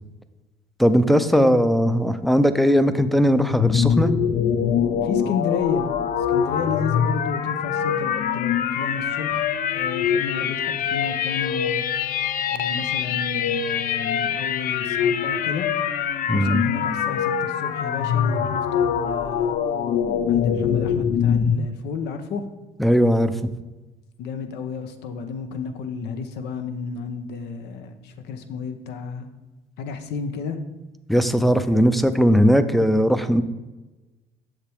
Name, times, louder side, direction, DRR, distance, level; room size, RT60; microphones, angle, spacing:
voice 1, 0.8-4.1 16.3-16.6 22.8-23.3 31.1-33.4, equal, ahead, 11 dB, 0.4 m, -18 dB
sound 1, 3.5-21.6, left 8 dB, 55° left, 0.5 m, -24 dB
voice 2, 5.0-5.9 6.3-11.8 12.5-15.7 16.3-19.6 20.3-22.4 24.2-29.3 29.8-30.6 31.7-31.8, left 5 dB, 80° left, 8 dB, 0.8 m, -31 dB
7.3 x 6.6 x 3.4 m, 1.2 s
cardioid pair, 110°, 17 cm